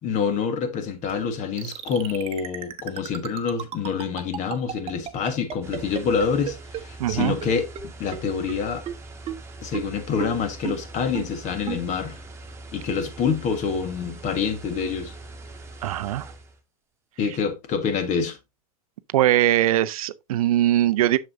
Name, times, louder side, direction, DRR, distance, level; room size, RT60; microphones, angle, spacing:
voice 1, 0.0-7.7 8.0-8.8 9.6-12.2 12.7-15.1 17.2-18.4, left 6 dB, 40° left, 1.5 m, -26 dB
sound 1, 1.6-6.8 7.1-7.2 7.4-7.5 7.7-7.8 8.1-8.2 8.5-8.6 8.9-9.0 9.3-9.4 9.7-9.8 10.2-10.3 10.6-10.7 11.1-11.2 11.7-11.8, right 11 dB, 30° right, 1.0 m, -32 dB
sound 2, 5.6-16.6, right 2 dB, 15° right, 1.7 m, -42 dB
voice 2, 7.0-7.4 15.8-16.3 19.1-21.2, right 13 dB, 70° right, 0.5 m, -21 dB
7.5 x 6.6 x 2.6 m
hypercardioid pair, 100°, 19 cm